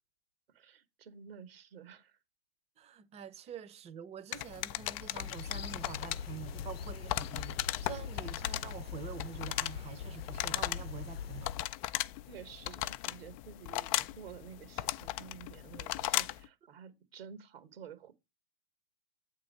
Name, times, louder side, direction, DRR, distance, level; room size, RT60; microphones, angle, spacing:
voice 1, 0.5-2.2 12.3-18.1, right 8 dB, 80° right, 1.9 m, -51 dB
voice 2, 2.8-11.5, right 8 dB, 20° right, 0.8 m, -46 dB
sound 1, 4.3-16.5, left 16 dB, 40° left, 0.5 m, -37 dB
sound 2, 5.2-11.7, left 6 dB, 85° left, 0.7 m, -42 dB
8.0 x 3.7 x 6.5 m
hypercardioid pair, 125°, 29 cm